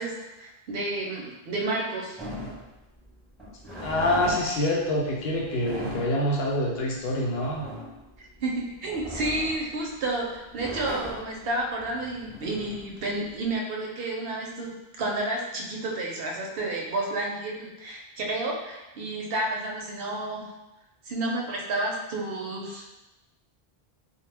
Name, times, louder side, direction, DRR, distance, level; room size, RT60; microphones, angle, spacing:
voice 1, 0.0-2.2 8.2-20.5 21.0-22.9, right 2 dB, 70° right, -1 dB, 0.7 m, -31 dB
sound 1, 2.2-13.5, equal, ahead, 0.8 m, -39 dB
voice 2, 3.8-7.7, left 1 dB, 75° left, -3 dB, 0.8 m, -26 dB
2.1 x 2.1 x 3.2 m, 1.0 s
omnidirectional pair, 1.0 m